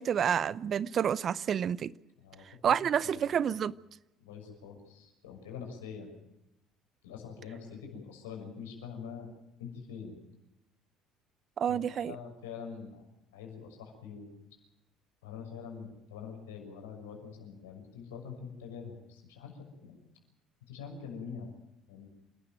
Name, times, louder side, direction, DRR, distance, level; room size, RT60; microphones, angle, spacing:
voice 1, 0.0-1.9 2.5-3.8 11.6-12.1, right 8 dB, 50° right, 0.7 m, -29 dB
voice 2, 2.2-2.7 3.0-3.5 4.2-6.1 7.0-9.3 9.6-10.2 11.7-13.0 13.3-14.4 15.2-20.0 20.7-21.5 21.9-22.1, left 6 dB, 90° left, 6.4 m, -45 dB
28.0 x 13.0 x 9.1 m
hypercardioid pair, 70°, 0 cm